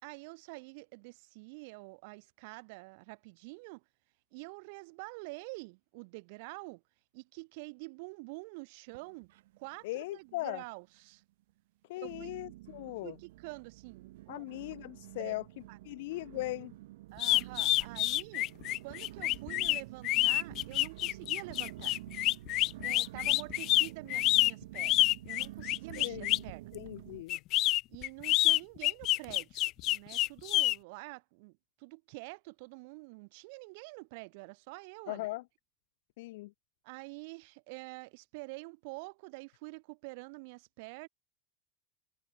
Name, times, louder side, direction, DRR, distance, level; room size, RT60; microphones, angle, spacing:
voice 1, 0.0-3.8 4.3-6.8 7.1-9.3 9.6-11.2 12.0-12.3 13.0-14.5 15.2-15.3 15.7-15.8 17.1-18.5 18.8-22.0 22.8-25.0 25.2-26.7 27.9-35.3 36.8-41.1, right 29 dB, 60° right, 6.2 m, -47 dB
sound 1, 8.9-9.8 10.1-10.7 11.2-11.3 12.0-27.2, right 17 dB, 75° right, 6.4 m, -49 dB
voice 2, 9.8-10.6 11.9-13.1 14.3-15.4 15.8-16.7 26.0-26.4 26.7-27.4 35.1-35.4 36.2-36.5, left 19 dB, 70° left, 2.5 m, -39 dB
sound 2, 17.2-26.5 27.3-30.8, left 17 dB, 40° left, 1.1 m, -28 dB
supercardioid pair, 160°, 0 cm